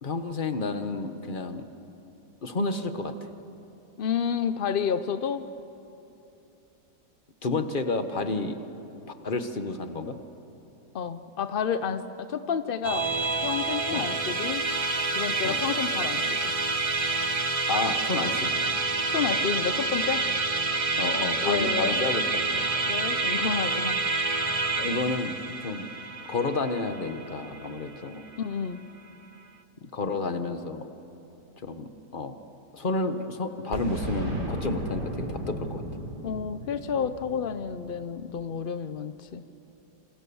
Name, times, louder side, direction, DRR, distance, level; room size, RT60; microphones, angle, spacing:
voice 1, 0.0-1.7 2.4-3.1 7.4-8.6 9.2-10.2 13.9-14.1 15.4-15.6 17.7-18.5 21.0-22.7 24.8-25.9 26.3-28.3 29.8-30.8 31.6-32.4 32.7-35.8, left 3 dB, 30° left, 8 dB, 1.3 m, -30 dB
voice 2, 4.0-5.5 10.9-13.1 13.4-14.6 15.1-16.5 19.1-20.2 21.4-22.0 22.9-24.0 28.4-28.8 36.2-39.4, left 7 dB, 65° left, 11 dB, 0.5 m, -30 dB
Musical instrument, 12.8-28.4, right 3 dB, 25° right, 0.9 m, -28 dB
Boom, 33.7-38.4, right 1 dB, 70° right, 4.4 m, -35 dB
28.0 x 27.5 x 7.1 m, 2.9 s
omnidirectional pair, 1.9 m